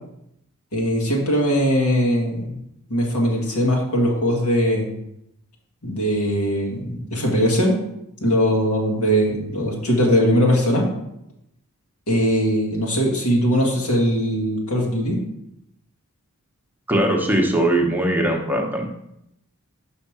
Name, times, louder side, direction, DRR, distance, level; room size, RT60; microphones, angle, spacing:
voice 1, 0.7-2.6 2.9-4.9 5.8-7.8 8.2-10.9 12.1-15.2, equal, 85° left, -1 dB, 2.0 m, -20 dB
voice 2, 16.9-18.9, right 1 dB, 10° right, 1 dB, 0.8 m, -20 dB
5.5 x 5.0 x 6.0 m, 0.80 s
head